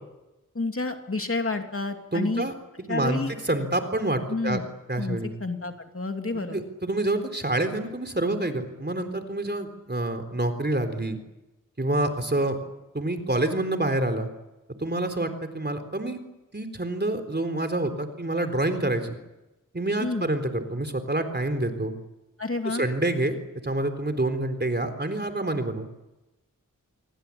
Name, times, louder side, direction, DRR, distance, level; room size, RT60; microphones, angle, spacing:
voice 1, 0.5-2.5 2.9-3.3 4.3-4.6 5.0-6.6 20.0-20.3 22.4-22.9, left 3 dB, 40° left, 5 dB, 2.8 m, -29 dB
voice 2, 2.1-2.5 2.9-4.6 4.9-5.3 6.3-11.2 11.8-12.6 12.9-14.3 14.8-16.2 16.5-19.2 19.7-21.9 22.6-23.4 23.6-25.9, right 2 dB, 30° right, 8 dB, 3.9 m, -27 dB
27.5 x 23.5 x 8.7 m, 1.0 s
wide cardioid pair, 75°, 33 cm